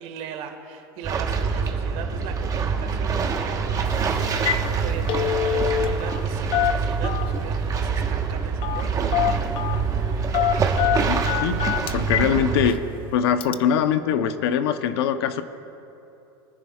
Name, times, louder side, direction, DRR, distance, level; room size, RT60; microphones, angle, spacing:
voice 1, 0.0-9.0, right 7 dB, 55° right, 5 dB, 1.8 m, -38 dB
sound 1, 1.0-12.7, right 5 dB, 25° right, 1.2 m, -25 dB
Telephone, 3.8-4.0 4.3-4.7 4.9-6.2 6.5-7.5 8.6-8.9 9.1-9.8 10.3-12.3 12.7-12.8 13.4-13.5, left 11 dB, 40° left, 0.6 m, -25 dB
voice 2, 11.1-11.7 11.9-12.8 13.1-15.4, left 8 dB, 75° left, 10 dB, 0.8 m, -22 dB
24.0 x 10.0 x 2.4 m, 2.9 s
supercardioid pair, 120°, 13 cm